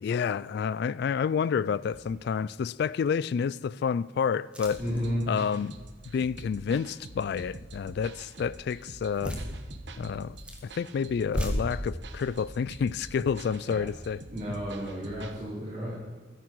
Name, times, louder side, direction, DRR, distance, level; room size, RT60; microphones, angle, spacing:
voice 1, 0.0-4.8 5.3-5.7 6.1-9.3 10.0-10.4 10.7-14.2, left 6 dB, 60° left, 0.3 m, -29 dB
sound 1, 1.9-2.3 2.9-3.0 4.4-5.0 9.1-9.5 10.2-10.6 11.2-11.5, equal, 5° right, 2.0 m, -35 dB
sound 2, 4.7-15.4, right 2 dB, 65° right, 1.2 m, -46 dB
voice 2, 4.8-5.3 13.6-13.9 14.3-15.9, equal, 40° right, 4.1 m, -32 dB
15.5 x 13.0 x 4.7 m
head